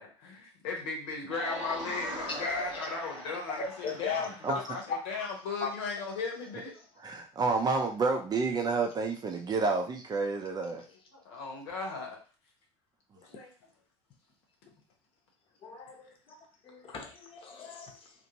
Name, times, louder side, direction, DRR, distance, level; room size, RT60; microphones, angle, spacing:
voice 1, 0.0-4.3 4.7-6.8 10.7-10.8 11.1-12.2 13.2-13.5, left 4 dB, 60° left, 1 dB, 0.9 m, -36 dB
sound 1, 1.3-4.8 7.5-7.6, equal, 90° left, 0.8 m, -41 dB
voice 2, 3.6-5.0 5.6-5.7 15.6-16.4 16.6-18.1, left 5 dB, 35° left, 3 dB, 0.8 m, -37 dB
voice 3, 7.0-10.8, right 4 dB, 25° right, 4 dB, 0.6 m, -29 dB
3.0 x 2.5 x 2.8 m, 0.35 s
figure-of-eight pair, 65°, 15 cm